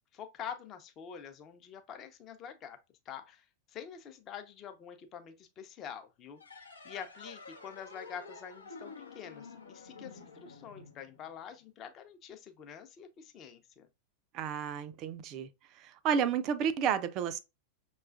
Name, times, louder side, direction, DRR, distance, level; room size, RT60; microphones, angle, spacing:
voice 1, 0.1-2.8 3.1-13.9, left 8 dB, 30° left, 0.6 m, -46 dB
sound 1, 6.4-11.6, left 4 dB, 75° left, 0.7 m, -50 dB
voice 2, 14.3-15.5 15.8-17.4, right 7 dB, 40° right, 0.4 m, -31 dB
6.0 x 2.3 x 2.3 m
figure-of-eight pair, 90°, 0 cm